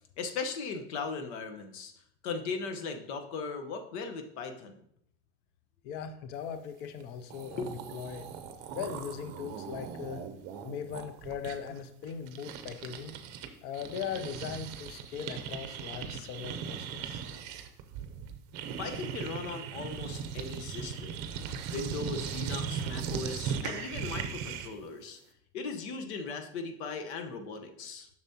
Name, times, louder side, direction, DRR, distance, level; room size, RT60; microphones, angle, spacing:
voice 1, 0.2-1.9 2.2-4.7 7.4-7.7 18.8-21.2 21.7-25.2 25.5-28.1, left 4 dB, 70° left, 7 dB, 1.0 m, -38 dB
voice 2, 5.8-8.3 8.7-10.2 10.6-13.2 13.6-17.2, left 7 dB, 30° left, 10 dB, 0.4 m, -39 dB
sound 1, 7.0-7.1 7.3-13.5 13.7-24.8, right 7 dB, 45° right, 0.7 m, -38 dB
7.1 x 6.0 x 2.8 m, 0.70 s
supercardioid pair, 160°, 34 cm